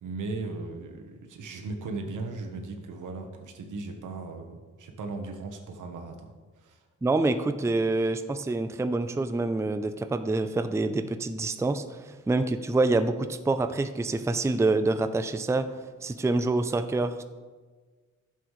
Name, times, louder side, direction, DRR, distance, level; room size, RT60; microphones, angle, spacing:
voice 1, 0.0-6.3 6.6-6.8, right 3 dB, 80° right, 4 dB, 1.1 m, -37 dB
voice 2, 7.0-15.7 16.0-17.2, right 2 dB, 10° right, 10 dB, 0.4 m, -26 dB
11.0 x 7.1 x 3.2 m, 1.4 s
cardioid pair, 60°, 31 cm